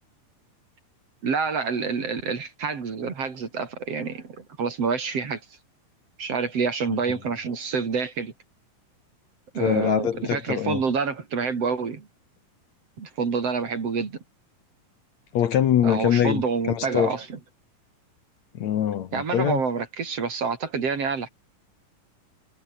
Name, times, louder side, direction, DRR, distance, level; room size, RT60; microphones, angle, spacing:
voice 1, 1.2-5.4 6.2-8.3 9.5-12.1 13.0-14.2 15.8-17.4 19.1-21.3, right 5 dB, 50° right, 3.9 m, -27 dB
voice 2, 9.6-10.8 15.3-17.1 18.6-19.6, left 10 dB, 60° left, 2.4 m, -23 dB
omnidirectional pair, 3.9 m